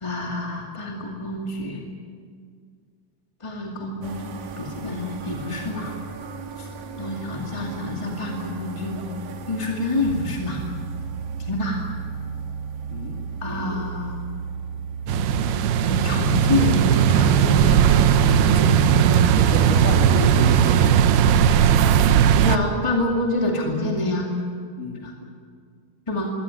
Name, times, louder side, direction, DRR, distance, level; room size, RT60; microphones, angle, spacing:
voice 1, 0.0-1.8 3.4-5.9 7.0-9.0 9.5-10.6 11.5-11.8 13.4-14.2 15.8-19.2 22.4-24.3 25.0-25.1 26.1-26.3, left 2 dB, 15° left, 0 dB, 1.3 m, -27 dB
sound 1, 4.0-22.1, right 5 dB, 60° right, 1.9 m, -35 dB
voice 2, 12.9-13.3 19.3-20.9 24.8-25.1, left 3 dB, 60° left, 2 dB, 3.9 m, -31 dB
sound 2, 15.1-22.6, right 8 dB, 90° right, 2.9 m, -17 dB
22.5 x 17.5 x 9.8 m, 2.1 s
omnidirectional pair, 4.3 m